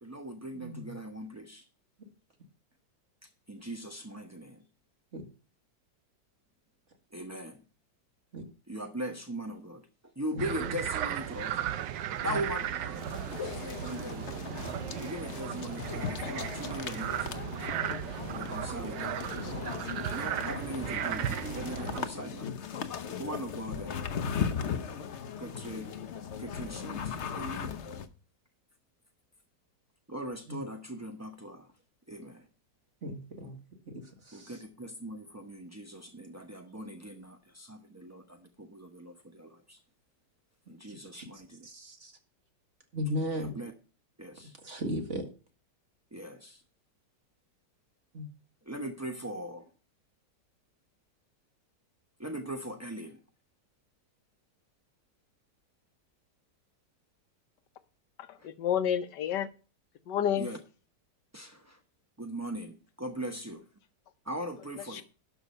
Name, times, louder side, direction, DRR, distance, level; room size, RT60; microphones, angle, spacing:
voice 1, 0.0-1.6 3.5-4.6 7.1-7.6 8.7-9.8 10.2-11.6 12.2-14.5 14.9-17.3 18.4-19.8 20.1-22.5 23.2-24.1 25.4-25.9 26.4-27.8 30.1-31.7 32.1-32.5 34.3-39.8 40.7-41.7 43.4-43.7 44.2-44.6 46.1-46.6 48.6-49.7 52.2-53.2 58.4-58.5 60.4-60.6 61.3-61.8 62.2-63.6 64.2-65.0, right 1 dB, 20° right, 0.4 m, -40 dB
voice 2, 0.5-1.0 5.1-5.2 8.3-8.4 10.3-10.8 12.2-12.4 30.5-30.6 33.0-33.6 33.9-34.6 40.9-42.1 42.9-43.6 44.6-45.3 48.1-48.3, equal, 40° right, 2.2 m, -37 dB
sound 1, 10.4-22.1, right 10 dB, 80° right, 1.4 m, -36 dB
sound 2, 13.0-28.1, left 7 dB, 50° left, 0.9 m, -38 dB
voice 3, 58.3-59.5 60.1-60.5 64.9-65.0, left 9 dB, 75° left, 1.4 m, -29 dB
12.0 x 6.0 x 5.4 m
omnidirectional pair, 1.9 m